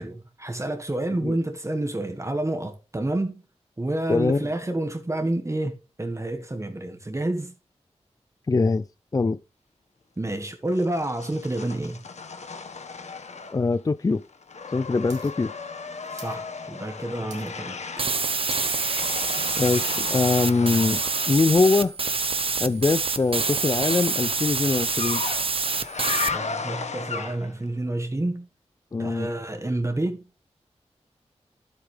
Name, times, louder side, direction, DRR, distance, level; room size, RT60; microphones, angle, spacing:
voice 1, 0.0-3.4 3.8-7.5 10.2-12.0 16.1-18.0 26.3-28.5 29.0-30.2, right 1 dB, 25° right, 1.6 m, -29 dB
voice 2, 4.1-4.5 8.5-8.9 9.1-9.4 13.5-14.2 14.7-15.5 19.6-22.0 22.6-25.2 28.9-29.3, left 3 dB, 30° left, 0.4 m, -23 dB
sound 1, 10.7-13.8 14.1-21.4 22.9-27.6, left 5 dB, 75° left, 1.5 m, -36 dB
sound 2, 15.1-15.3 15.6-16.4 16.8-17.0 17.3-17.7 18.1-18.2 18.4-18.8 19.2-20.1 20.8-20.9, right 4 dB, 80° right, 2.5 m, -46 dB
sound 3, 18.0-26.3, right 4 dB, 50° right, 1.0 m, -26 dB
11.5 x 8.1 x 3.4 m
wide cardioid pair, 70°, 12 cm